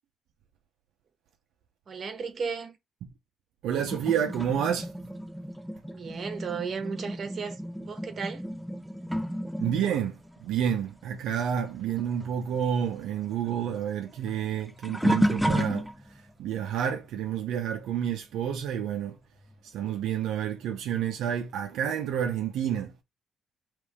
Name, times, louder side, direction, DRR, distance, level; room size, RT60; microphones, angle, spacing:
voice 1, 1.9-2.8 5.9-8.4, right 5 dB, 50° right, 1.2 m, -35 dB
voice 2, 3.6-4.9 9.6-10.1 10.4-15.9 16.4-19.2 19.7-22.9, right 9 dB, 85° right, 0.6 m, -29 dB
sound 1, 3.7-11.7 12.0-16.3 16.9-17.3 19.5-19.6 20.5-20.6, equal, ahead, 0.5 m, -33 dB
3.4 x 3.2 x 4.8 m
cardioid pair, 90°, 0 cm